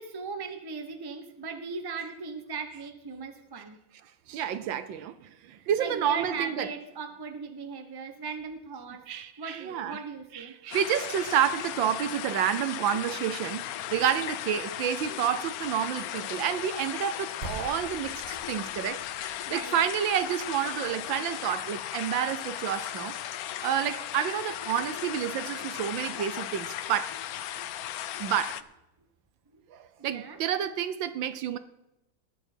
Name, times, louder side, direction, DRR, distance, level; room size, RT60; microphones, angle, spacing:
voice 1, 0.0-3.8 5.6-9.1 9.4-10.5 19.5-19.8 24.4-24.5 30.1-30.4, right 5 dB, 15° right, 0.8 m, -38 dB
voice 2, 4.3-6.7 9.1-10.0 10.3-23.2 23.6-27.1 28.2-28.6 29.7-31.6, right 9 dB, 70° right, 1.4 m, -29 dB
sound 1, 10.7-28.6, left 12 dB, 90° left, 0.8 m, -36 dB
sound 2, 17.4-23.2, right 3 dB, 35° right, 1.7 m, -46 dB
20.0 x 8.0 x 4.5 m
omnidirectional pair, 2.3 m